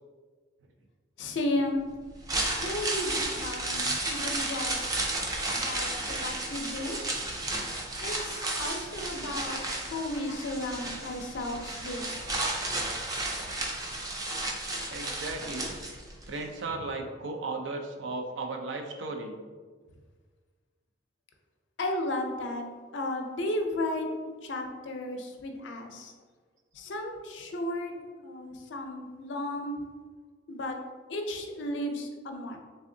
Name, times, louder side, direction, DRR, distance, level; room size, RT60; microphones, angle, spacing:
voice 1, 1.2-1.9 2.6-4.8 5.5-7.2 8.0-9.6 9.9-12.2 21.8-22.7 22.9-26.1 26.7-29.8 30.5-30.8 31.1-32.6, left 1 dB, 80° left, 4 dB, 0.5 m, -34 dB
sound 1, 2.1-16.3 16.6-16.7, right 2 dB, 20° right, 0.4 m, -33 dB
voice 2, 14.9-15.7 16.3-19.4, right 3 dB, 90° right, 3 dB, 0.5 m, -35 dB
3.5 x 3.3 x 2.6 m, 1.5 s
head